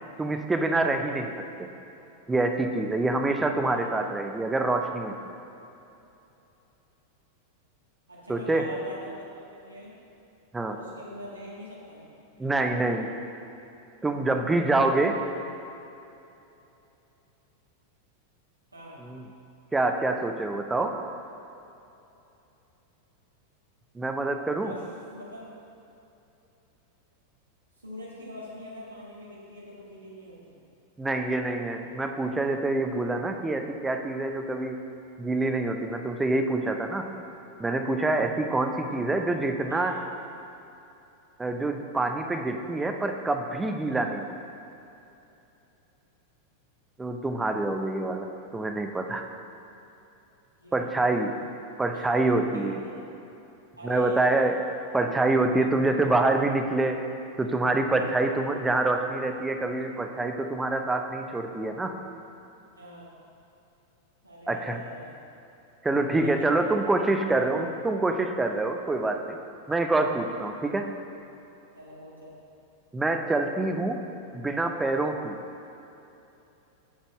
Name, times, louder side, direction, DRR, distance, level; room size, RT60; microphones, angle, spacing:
voice 1, 0.2-1.7 2.3-5.1 8.3-8.6 10.5-10.8 12.4-13.1 14.0-15.2 19.0-19.2 19.7-21.0 23.9-24.7 31.0-34.8 35.2-37.1 37.6-39.9 41.4-44.4 47.0-48.3 48.5-49.2 50.7-51.3 51.8-52.8 53.8-54.5 54.9-57.0 57.4-62.0 64.5-64.8 65.8-69.4 69.7-70.9 72.9-74.0 74.3-75.4, right 2 dB, 10° right, 5 dB, 0.6 m, -26 dB
voice 2, 3.6-3.9 8.1-9.9 10.6-12.1 14.5-15.3 18.7-19.0 24.5-24.8 25.1-25.5 27.8-30.6 39.7-40.0 47.4-47.5 50.6-51.1 51.9-52.1 52.5-53.0 53.8-54.5 57.9-58.2 62.8-63.1 64.2-65.1 65.9-66.6 67.3-67.5 71.7-72.3, equal, 80° right, -6 dB, 1.7 m, -43 dB
8.6 x 4.2 x 5.8 m, 2.9 s
figure-of-eight pair, 90°, 0 cm